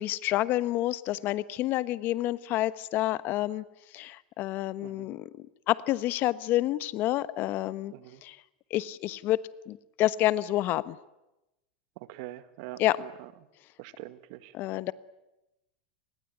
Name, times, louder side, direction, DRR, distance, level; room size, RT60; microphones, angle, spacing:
voice 1, 0.0-3.6 3.9-7.9 8.2-8.4 8.7-9.4 9.7-11.0 12.8-13.0 14.5-14.9, left 15 dB, 45° left, 17 dB, 1.1 m, -28 dB
voice 2, 12.0-13.3 13.8-14.5, right 16 dB, 60° right, 13 dB, 1.9 m, -44 dB
28.5 x 21.0 x 9.4 m, 0.93 s
supercardioid pair, 125°, 5 cm